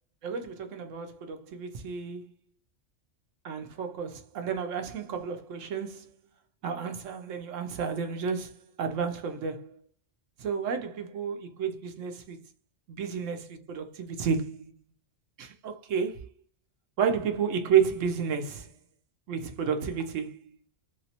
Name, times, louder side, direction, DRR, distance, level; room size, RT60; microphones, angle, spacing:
voice 1, 0.2-2.3 3.4-6.1 6.6-9.8 10.4-12.4 12.9-13.4 13.7-14.7 15.4-16.3 17.0-18.7 19.3-20.4, right 7 dB, 80° right, 1.0 m, -31 dB
3.1 x 2.8 x 2.8 m
omnidirectional pair, 1.3 m